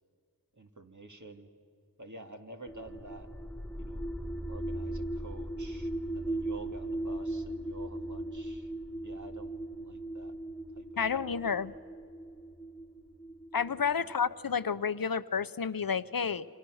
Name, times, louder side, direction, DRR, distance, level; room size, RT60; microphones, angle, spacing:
voice 1, 0.6-1.5 2.0-3.3 3.8-4.1 4.5-8.7 9.0-10.4 10.8-10.9 11.1-11.5 13.8-14.0, right 2 dB, 55° right, 4 dB, 2.2 m, -49 dB
sound 1, 2.7-14.5, right 1 dB, 5° left, 0.9 m, -38 dB
voice 2, 11.0-11.7 13.5-16.4, left 6 dB, 75° left, 14 dB, 0.7 m, -30 dB
28.5 x 26.0 x 6.4 m, 2.4 s
wide cardioid pair, 40°, 35 cm